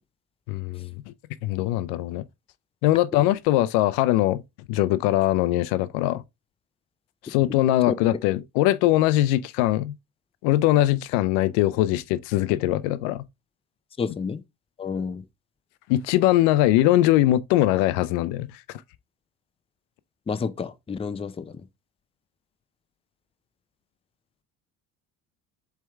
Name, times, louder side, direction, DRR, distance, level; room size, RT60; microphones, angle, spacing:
voice 1, 0.5-1.1 1.4-2.2 2.8-4.4 4.7-6.2 7.2-10.0 10.4-13.3 15.9-18.6, left 15 dB, 85° left, 0.5 m, -21 dB
voice 2, 14.0-14.4 14.8-15.2 20.3-21.6, left 5 dB, 15° left, 0.4 m, -30 dB
4.5 x 3.4 x 3.3 m
supercardioid pair, 80°, 42 cm